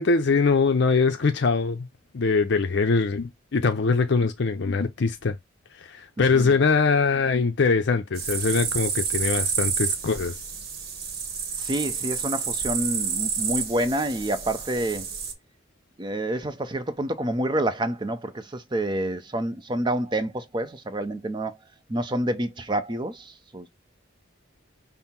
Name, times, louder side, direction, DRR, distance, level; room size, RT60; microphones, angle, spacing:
voice 1, 0.0-1.9 2.1-5.4 5.8-10.3, left 4 dB, 60° left, 0.5 m, -22 dB
voice 2, 6.2-6.5 11.6-15.1 16.0-21.6 21.9-23.7, right 1 dB, 25° right, 0.6 m, -28 dB
sound 1, 8.2-15.3, right 6 dB, 50° right, 0.9 m, -29 dB
5.5 x 2.0 x 4.3 m
head